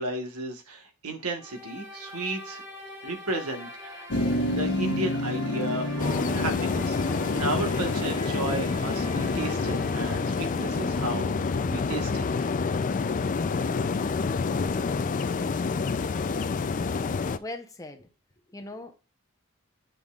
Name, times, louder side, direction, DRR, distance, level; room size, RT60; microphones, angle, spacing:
voice 1, 0.0-2.6 3.0-4.1 4.4-7.0 7.3-12.2, right 2 dB, 80° right, 1.4 m, -34 dB
sound 1, 1.4-11.3, left 1 dB, 15° right, 1.3 m, -43 dB
Motor vehicle (road), 4.1-13.1, left 1 dB, 85° left, 1.1 m, -32 dB
sound 2, 6.0-17.4, left 4 dB, 35° left, 0.4 m, -28 dB
voice 2, 17.4-18.1 18.5-18.9, left 2 dB, 15° left, 0.7 m, -39 dB
7.9 x 5.4 x 2.4 m
head